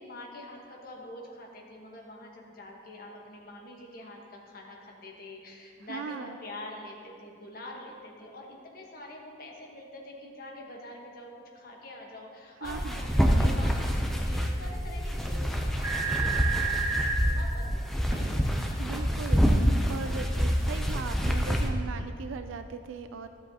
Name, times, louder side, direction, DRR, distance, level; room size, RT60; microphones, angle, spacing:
voice 1, 0.0-18.4, left 1 dB, 50° left, -1 dB, 1.2 m, -45 dB
voice 2, 5.9-6.4 12.6-13.0 18.8-19.4 19.7-23.3, right 5 dB, 85° right, 8 dB, 0.3 m, -38 dB
sound 1, 12.7-21.7, equal, ahead, 0.5 m, -27 dB
sound 2, 15.8-17.1 18.1-18.2, right 5 dB, 20° right, 1.7 m, -30 dB
12.5 x 7.6 x 2.8 m, 2.4 s
head